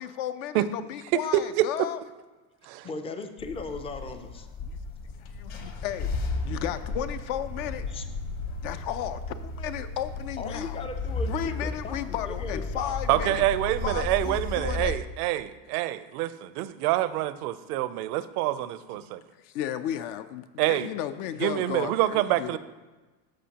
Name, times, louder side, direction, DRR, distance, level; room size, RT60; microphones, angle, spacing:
voice 1, 0.0-2.0 4.6-4.7 5.3-7.9 8.6-10.8 11.3-13.4 13.8-15.0 19.0-19.1 19.4-22.6, left 11 dB, 65° left, 10 dB, 0.6 m, -34 dB
voice 2, 1.1-1.7 2.6-2.9 13.1-19.2 20.6-20.9 21.4-22.6, right 14 dB, 70° right, 15 dB, 0.6 m, -26 dB
voice 3, 2.8-4.5 7.9-8.0 10.4-13.5, left 4 dB, 15° left, 7 dB, 0.3 m, -37 dB
sound 1, 3.4-15.0, left 3 dB, 45° left, 1.1 m, -34 dB
13.0 x 5.1 x 2.9 m, 1.2 s
supercardioid pair, 125°, 46 cm